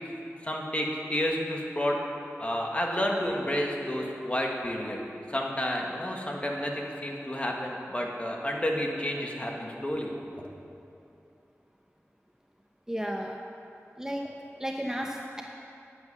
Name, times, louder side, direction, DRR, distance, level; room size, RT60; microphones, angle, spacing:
voice 1, 0.4-2.0 2.4-5.0 5.3-10.4, equal, 25° left, -1 dB, 1.7 m, -30 dB
voice 2, 12.9-13.4 14.0-14.3 14.6-15.4, equal, 10° right, 0 dB, 0.8 m, -33 dB
11.0 x 8.1 x 6.9 m, 2.7 s
wide cardioid pair, 45°, 5 cm